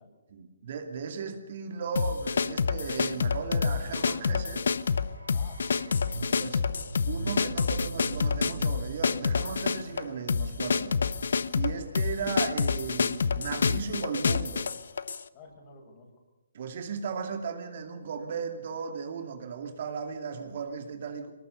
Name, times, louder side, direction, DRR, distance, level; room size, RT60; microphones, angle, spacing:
voice 1, 0.3-4.7 6.4-6.6 7.1-11.1 11.6-14.7 16.5-21.3, right 5 dB, 50° right, 6 dB, 2.4 m, -36 dB
sound 1, 2.0-15.2, left 5 dB, 65° left, 0.9 m, -28 dB
sound 2, 4.4-12.6 12.8-12.9, right 4 dB, 85° right, 0.8 m, -42 dB
voice 2, 5.3-6.4 15.3-16.1, left 3 dB, 30° left, 1 dB, 7.5 m, -52 dB
23.0 x 19.5 x 6.8 m, 1.0 s
hypercardioid pair, 150°, 0 cm